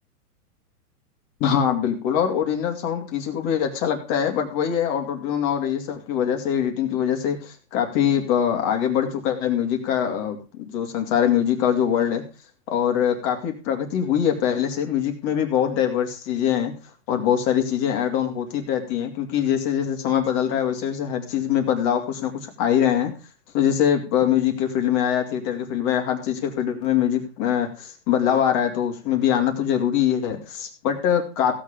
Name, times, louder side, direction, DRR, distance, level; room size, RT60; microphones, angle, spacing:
voice 1, 1.4-12.2 12.7-16.7 17.1-23.1 23.5-31.5, left 9 dB, 35° left, 4 dB, 2.6 m, -23 dB
16.5 x 7.1 x 5.1 m, 0.33 s
hypercardioid pair, 140°, 48 cm